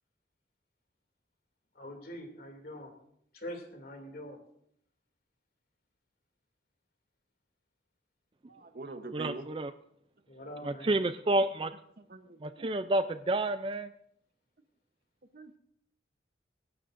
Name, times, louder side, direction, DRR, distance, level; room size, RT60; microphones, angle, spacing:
voice 1, 1.8-2.9 3.3-4.4 10.3-10.9, equal, 55° left, 3 dB, 2.7 m, -44 dB
voice 2, 8.5-9.5 12.0-12.7 15.3-15.6, right 2 dB, 50° right, 8 dB, 1.0 m, -45 dB
voice 3, 9.1-9.7 10.6-11.7 12.4-13.9, right 2 dB, 30° right, 11 dB, 0.4 m, -30 dB
22.5 x 12.5 x 2.6 m, 0.72 s
head